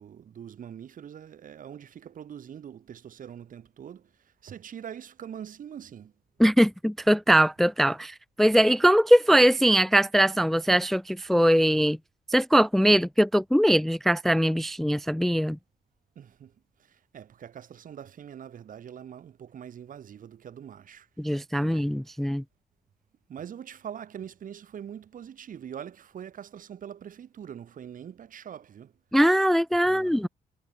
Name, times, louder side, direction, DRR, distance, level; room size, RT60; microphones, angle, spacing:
voice 1, 0.0-6.1 16.2-16.5 16.8-21.1 21.6-21.9 23.3-28.9 29.8-30.3, right 9 dB, 60° right, 5.7 m, -43 dB
voice 2, 6.4-12.0 12.3-15.6 21.2-22.4 29.1-30.3, equal, ahead, 0.4 m, -21 dB
cardioid pair, 125°, 16 cm